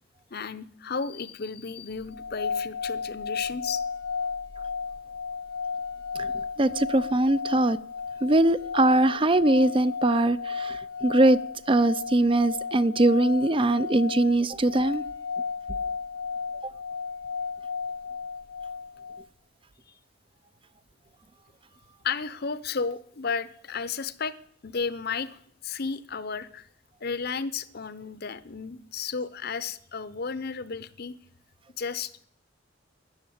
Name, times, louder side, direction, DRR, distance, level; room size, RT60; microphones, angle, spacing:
voice 1, 0.3-3.8 22.0-24.3 24.6-26.7 27.0-31.1 31.8-32.2, left 5 dB, 55° left, 0.8 m, -33 dB
sound 1, 2.1-19.3, left 5 dB, 80° left, 1.0 m, -34 dB
voice 2, 6.6-7.8 8.2-11.4 11.7-15.0 16.6-16.7, right 2 dB, 30° right, 0.5 m, -22 dB
13.0 x 10.0 x 8.7 m
head